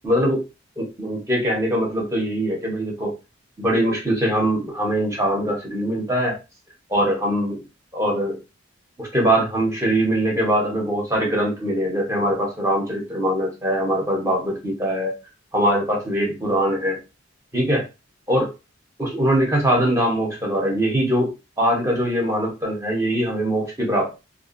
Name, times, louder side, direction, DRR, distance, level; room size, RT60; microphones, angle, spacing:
voice 1, 0.0-0.4 0.8-3.1 3.6-6.4 6.9-7.6 7.9-8.4 9.0-15.1 15.5-17.0 17.5-17.8 18.3-18.5 19.0-21.3 21.6-24.2, right 1 dB, 15° right, -2 dB, 0.9 m, -22 dB
2.5 x 2.3 x 2.5 m, 0.27 s
head